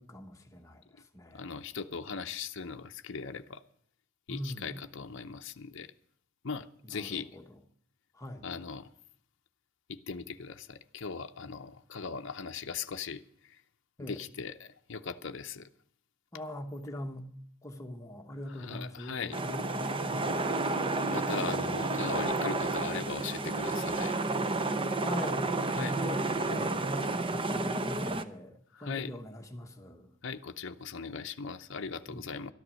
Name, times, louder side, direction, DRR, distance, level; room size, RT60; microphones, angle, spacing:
voice 1, 0.0-1.5 4.3-4.8 6.8-7.6 8.2-8.5 14.0-14.2 16.3-17.3 17.6-20.6 25.0-30.1 32.1-32.3, left 1 dB, 15° left, 1.1 m, -42 dB
voice 2, 1.3-3.6 4.3-5.9 6.4-7.3 8.4-8.9 9.9-13.6 14.0-15.7 18.5-19.4 21.1-24.2 25.7-26.0 28.7-29.1 30.2-32.5, left 5 dB, 55° left, 0.6 m, -39 dB
sound 1, 19.3-28.2, right 2 dB, 25° right, 0.6 m, -31 dB
13.0 x 11.0 x 6.3 m
head